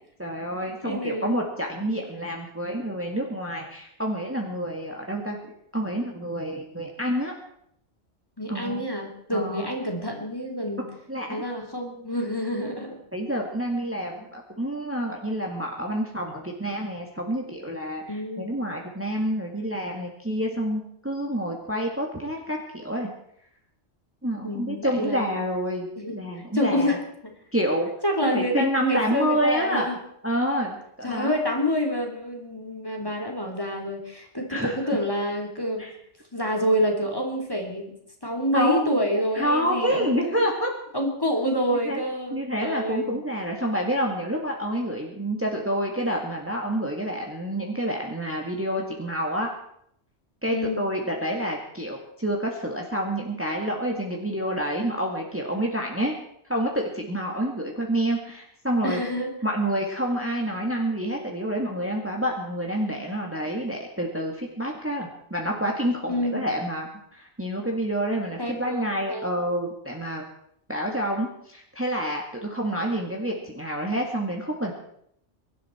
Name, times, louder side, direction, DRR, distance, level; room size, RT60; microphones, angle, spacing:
voice 1, 0.2-5.4 5.7-7.3 8.5-8.9 9.3-9.7 11.1-11.4 13.1-23.1 24.2-25.9 26.1-27.0 27.5-27.9 28.2-29.9 30.2-31.4 34.5-34.7 35.8-35.9 38.5-39.0 39.4-40.7 41.8-42.0 42.3-49.5 50.4-56.2 56.5-59.0 59.4-70.2 70.7-74.7, equal, 10° right, 0 dB, 2.0 m, -28 dB
voice 2, 0.8-1.4 8.4-10.8 11.3-13.0 18.1-18.5 24.4-25.3 26.0-26.1 26.5-27.0 28.0-30.0 31.0-35.9 36.3-37.9 38.2-40.3 40.9-43.2 50.5-50.8 58.8-59.3 66.1-66.5 68.4-69.4, equal, 20° left, 1 dB, 3.0 m, -27 dB
23.5 x 12.0 x 4.5 m, 0.70 s
omnidirectional pair, 1.2 m